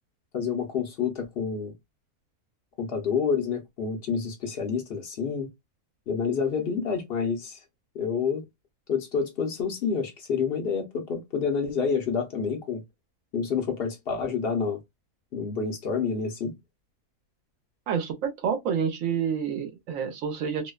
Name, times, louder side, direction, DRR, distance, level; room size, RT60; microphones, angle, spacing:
voice 1, 0.3-1.7 2.8-5.5 6.1-7.6 7.9-8.5 8.9-12.8 13.3-14.8 15.3-16.5, left 6 dB, 55° left, 0.7 m, -28 dB
voice 2, 17.9-20.7, right 7 dB, 65° right, 1.0 m, -28 dB
2.7 x 2.1 x 2.2 m
omnidirectional pair, 1.6 m